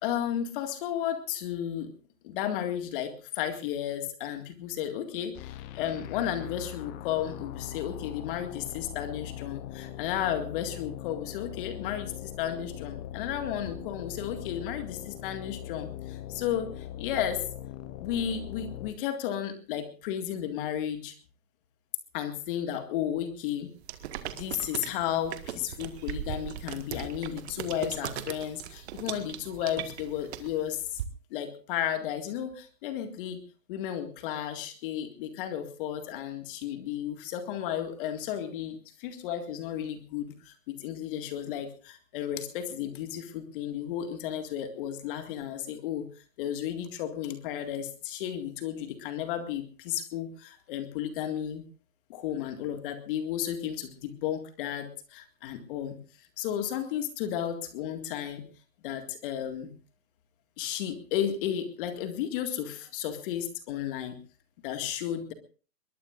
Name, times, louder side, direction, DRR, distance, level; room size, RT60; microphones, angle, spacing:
voice 1, 0.0-1.9 2.2-17.4 18.0-21.1 22.1-23.7 24.3-30.8 31.3-33.4 33.7-46.1 46.4-51.6 52.1-58.4 58.8-59.7 60.6-64.2 64.6-65.3, left 10 dB, 35° left, 7 dB, 2.0 m, -33 dB
sound 1, 5.3-18.9, left 12 dB, 15° left, 0.8 m, -41 dB
sound 2, 23.8-31.0, right 11 dB, 40° right, 1.7 m, -39 dB
22.0 x 21.5 x 2.5 m, 0.37 s
hypercardioid pair, 140°, 48 cm